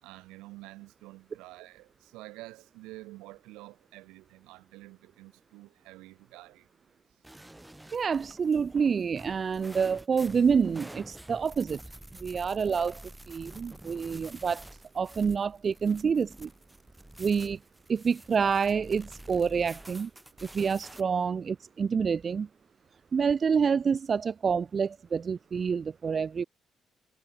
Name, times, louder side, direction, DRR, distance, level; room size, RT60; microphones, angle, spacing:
voice 1, 0.0-6.7, right 20 dB, 85° right, 3.5 m, -48 dB
sound 1, 7.2-21.0, right 1 dB, 10° right, 2.7 m, -48 dB
voice 2, 7.9-11.8 12.2-14.6 14.9-16.5 17.2-17.6 17.9-20.1 20.4-22.5 23.1-26.4, right 6 dB, 50° right, 0.9 m, -27 dB
hypercardioid pair, 45°, 0 cm